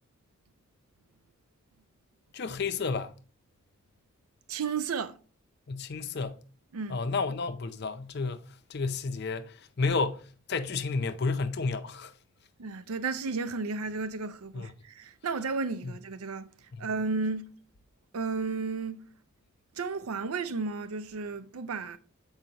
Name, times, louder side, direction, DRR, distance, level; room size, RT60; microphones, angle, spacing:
voice 1, 2.3-3.1 5.7-6.4 6.9-8.4 8.7-12.1 14.5-14.7 15.8-15.9 16.8-16.9, left 4 dB, 50° left, 0.5 m, -31 dB
voice 2, 4.5-5.2 6.7-7.0 12.6-16.5 16.8-17.5 18.1-19.0 19.8-22.0, right 4 dB, 85° right, 0.5 m, -33 dB
7.7 x 4.8 x 2.9 m
head